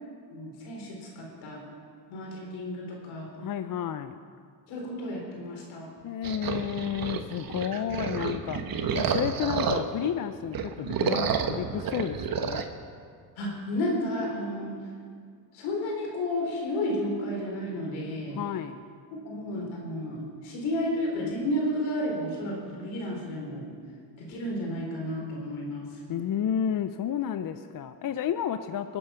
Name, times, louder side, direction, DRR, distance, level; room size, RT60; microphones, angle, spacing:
voice 1, 0.3-1.6 2.1-3.3 4.7-5.9 13.4-14.8 15.5-18.4 19.2-23.7 24.2-25.9, left 1 dB, 80° left, -1 dB, 4.3 m, -32 dB
voice 2, 3.4-4.2 6.0-12.7 18.2-18.8 26.1-29.0, left 9 dB, 45° left, 10 dB, 0.6 m, -31 dB
sound 1, 6.2-10.1 10.5-12.7, right 6 dB, 50° right, 1.2 m, -30 dB
22.0 x 8.5 x 5.8 m, 2.1 s
supercardioid pair, 80°, 46 cm